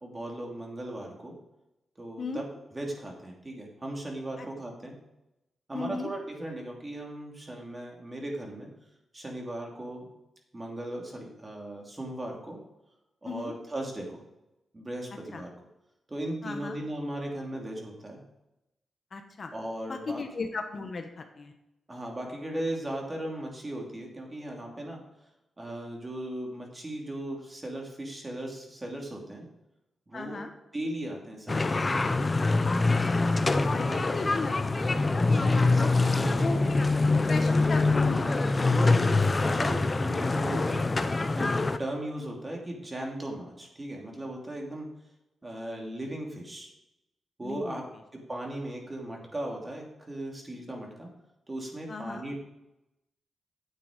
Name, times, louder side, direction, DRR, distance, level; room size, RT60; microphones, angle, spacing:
voice 1, 0.0-1.3 2.0-5.0 5.7-8.7 9.1-10.1 10.5-12.6 13.2-14.2 14.7-15.5 16.1-18.2 19.5-20.2 21.9-25.0 25.6-29.5 30.1-30.4 30.7-32.1 33.6-34.1 35.2-37.0 38.6-44.9 45.4-46.7 47.4-47.8 48.3-51.1 51.5-52.4, right 1 dB, 25° right, 0 dB, 2.9 m, -37 dB
voice 2, 5.7-6.1 13.2-13.5 15.3-15.4 16.4-16.8 19.1-19.5 19.9-21.5 30.1-30.5 33.4-34.5 36.4-36.8 37.3-38.2 47.4-47.8 51.9-52.2, left 3 dB, 45° left, 5 dB, 1.2 m, -36 dB
sound 1, 31.5-41.8, left 3 dB, 30° left, 0.7 m, -24 dB
9.3 x 8.0 x 5.2 m, 0.91 s
cardioid pair, 95°, 0 cm